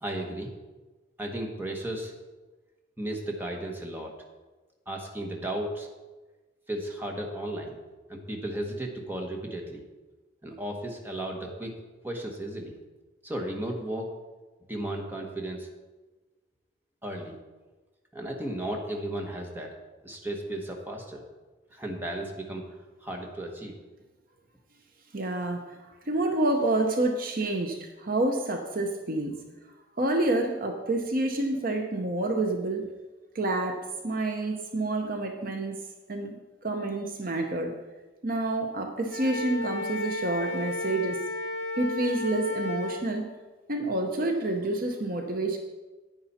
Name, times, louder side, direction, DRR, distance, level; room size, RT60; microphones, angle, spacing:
voice 1, 0.0-0.5 1.2-2.1 3.0-4.1 4.9-5.9 6.7-7.8 8.1-9.8 10.4-11.7 12.0-12.7 13.2-14.1 14.7-15.7 17.0-17.4 18.1-19.7 20.0-21.2 21.7-22.6 23.0-23.7, right 1 dB, 10° right, 1 dB, 1.3 m, -34 dB
voice 2, 25.1-25.6 26.1-29.3 30.0-32.8 33.3-35.8 36.1-36.3 36.6-37.7 38.2-41.2 41.8-43.2 43.7-45.6, right 2 dB, 45° right, 4 dB, 0.8 m, -28 dB
Wind instrument woodwind instrument, 39.1-43.0, left 2 dB, 60° left, 3.7 m, -33 dB
9.9 x 9.4 x 4.3 m, 1.2 s
head